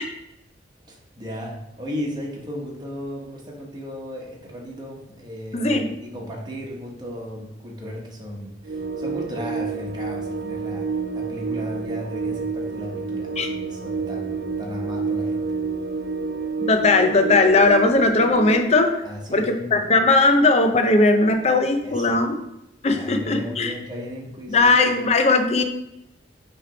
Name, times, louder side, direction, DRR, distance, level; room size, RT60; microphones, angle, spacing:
voice 1, 0.9-15.6 19.0-19.8 21.8-22.2 22.9-24.7, equal, 20° right, -3 dB, 1.1 m, -35 dB
voice 2, 5.5-5.8 13.4-13.5 16.7-19.0 19.3-22.3 22.8-23.7 24.5-25.6, left 3 dB, 35° left, 6 dB, 0.5 m, -18 dB
sound 1, 8.7-18.6, right 4 dB, 55° right, 0.5 m, -29 dB
6.0 x 3.3 x 5.0 m, 0.85 s
head